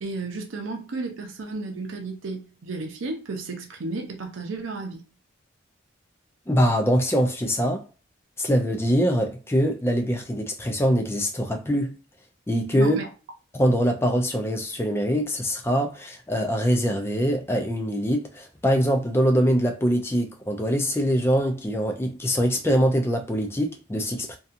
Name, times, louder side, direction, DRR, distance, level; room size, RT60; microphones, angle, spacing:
voice 1, 0.0-5.0 12.8-13.1, right 3 dB, 90° right, 0.6 m, -33 dB
voice 2, 6.5-7.8 8.4-12.0 12.5-13.0 13.5-24.4, equal, 15° left, 0.3 m, -23 dB
2.7 x 2.3 x 2.4 m
head